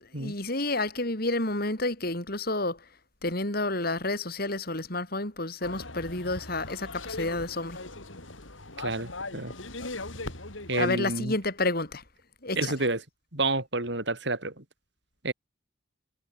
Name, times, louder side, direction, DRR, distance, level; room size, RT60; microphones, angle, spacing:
voice 1, 0.2-2.8 3.2-7.8 10.8-12.0 12.4-12.7, left 2 dB, 50° left, 5.8 m, -30 dB
sound 1, 5.6-11.0, left 2 dB, 80° left, 5.5 m, -39 dB
voice 2, 8.8-9.5 10.7-11.3 12.6-13.0 13.3-14.5 15.2-15.3, right 2 dB, 60° right, 4.9 m, -29 dB
head